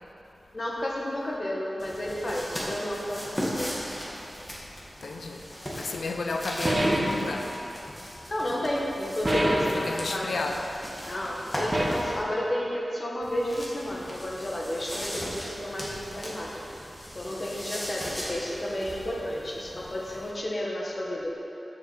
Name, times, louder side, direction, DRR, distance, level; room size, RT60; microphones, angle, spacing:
voice 1, 0.5-3.7 8.3-10.5 11.0-16.6 17.1-21.3, left 1 dB, 45° left, -3 dB, 1.6 m, -32 dB
sound 1, 1.8-12.2 13.2-20.3, equal, 20° left, 1.9 m, -38 dB
voice 2, 5.0-5.4 5.7-7.6 9.7-10.6, left 3 dB, 90° left, 3 dB, 0.7 m, -32 dB
sound 2, 6.6-7.3 9.2-9.8 11.7-12.2, right 1 dB, 35° right, 1.3 m, -25 dB
7.7 x 5.7 x 7.2 m, 2.9 s
wide cardioid pair, 60°, 0 cm